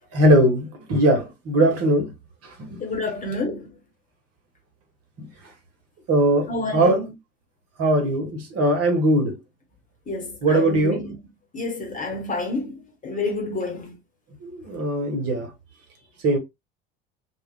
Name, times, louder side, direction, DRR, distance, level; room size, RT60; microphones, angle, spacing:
voice 1, 0.1-2.1 2.4-2.8 5.2-5.3 6.1-7.0 7.8-9.4 10.4-11.0 14.4-15.5 16.2-16.4, right 1 dB, 50° right, 1.3 m, -20 dB
voice 2, 2.8-3.7 6.5-7.0 10.1-11.2 11.5-13.9, left 2 dB, 25° left, 1.2 m, -29 dB
2.4 x 2.3 x 3.4 m
hypercardioid pair, 65°, 30 cm